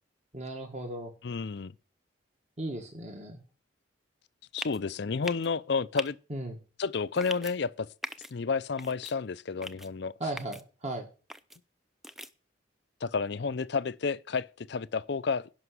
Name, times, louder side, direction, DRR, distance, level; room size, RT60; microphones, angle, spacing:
voice 1, 0.3-1.1 2.6-3.4 6.3-6.6 10.2-11.1, right 1 dB, 35° right, 1.7 m, -36 dB
voice 2, 1.2-1.7 4.5-6.2 6.8-7.9 8.3-10.1 13.0-15.5, left 5 dB, 60° left, 0.5 m, -31 dB
sound 1, 4.6-4.8 5.2-5.5 6.0-6.1 7.2-7.5 8.0-8.3 8.8-9.1 9.6-9.9 10.4-10.6 11.3-11.6 12.0-12.3, equal, ahead, 0.5 m, -40 dB
11.0 x 5.8 x 8.1 m
head